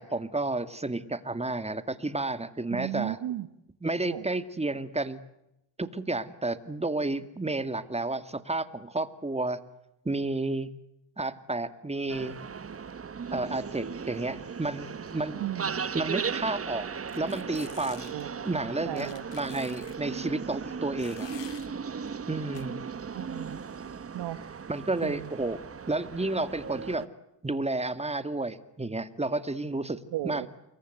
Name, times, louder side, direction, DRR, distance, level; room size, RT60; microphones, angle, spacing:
voice 1, 0.0-3.2 3.8-5.2 5.8-9.6 10.0-10.7 11.2-12.4 13.3-15.5 15.9-16.9 17.2-18.1 18.4-21.3 22.3-22.8 24.7-25.6 25.9-27.1 27.4-30.5, right 2 dB, 15° right, 11 dB, 2.3 m, -31 dB
voice 2, 2.7-3.5 4.0-4.3 15.4-15.8 18.1-18.5 18.9-19.2 23.1-23.6 24.1-24.4 25.0-25.3 30.1-30.5, right 13 dB, 80° right, 11 dB, 1.4 m, -35 dB
sound 1, 12.1-27.1, right 6 dB, 30° right, 1.2 m, -37 dB
sound 2, 17.1-18.2 19.0-20.0 21.0-21.7 22.6-22.7, left 10 dB, 70° left, 3.3 m, -48 dB
29.0 x 23.5 x 8.1 m, 0.85 s
cardioid pair, 95°, 43 cm